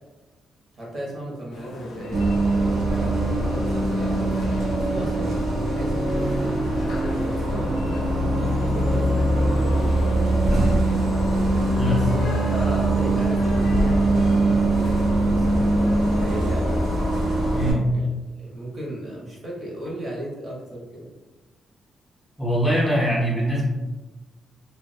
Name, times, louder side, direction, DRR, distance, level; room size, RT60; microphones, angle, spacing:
voice 1, 0.7-5.3 5.7-9.9 10.3-11.0 11.8-16.9 17.9-18.1 18.4-21.1, right 1 dB, 40° right, -4 dB, 0.8 m, -36 dB
sound 1, 1.5-17.4, left 2 dB, 70° left, 0.4 m, -38 dB
Bus, 2.1-17.7, right 1 dB, 90° right, 0.9 m, -22 dB
voice 2, 17.5-17.9 22.4-23.7, equal, 15° left, -5 dB, 0.5 m, -22 dB
2.3 x 2.2 x 2.6 m, 1.1 s
cardioid pair, 125°, 0 cm